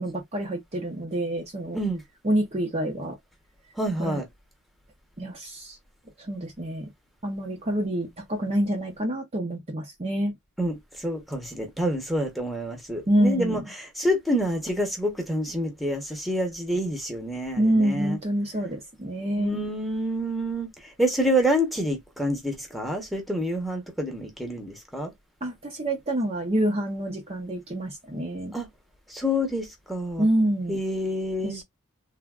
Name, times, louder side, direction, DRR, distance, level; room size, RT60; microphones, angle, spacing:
voice 1, 0.0-1.8 2.2-3.2 4.0-4.2 5.2-5.8 6.2-6.9 7.2-10.3 13.1-13.6 17.6-19.6 25.4-28.5 30.2-30.8 31.4-31.6, right 1 dB, 30° right, 0.7 m, -27 dB
voice 2, 3.8-4.3 10.6-13.6 13.9-18.2 19.4-25.1 28.5-28.7 29.1-30.3 30.7-31.6, equal, ahead, 1.0 m, -27 dB
3.5 x 2.5 x 2.3 m
head